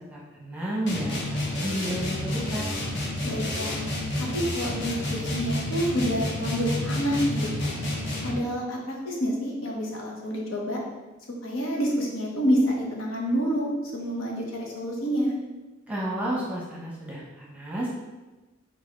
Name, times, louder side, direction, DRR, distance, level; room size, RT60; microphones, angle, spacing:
voice 1, 0.1-2.7 15.9-17.9, right 1 dB, 5° right, -5 dB, 0.8 m, -31 dB
sound 1, 0.9-8.5, left 1 dB, 60° left, 1.0 m, -30 dB
voice 2, 3.2-3.8 4.2-4.3 4.5-7.8 8.2-10.8 11.4-15.4, equal, 90° left, -2 dB, 1.0 m, -28 dB
4.1 x 3.5 x 3.7 m, 1.2 s
head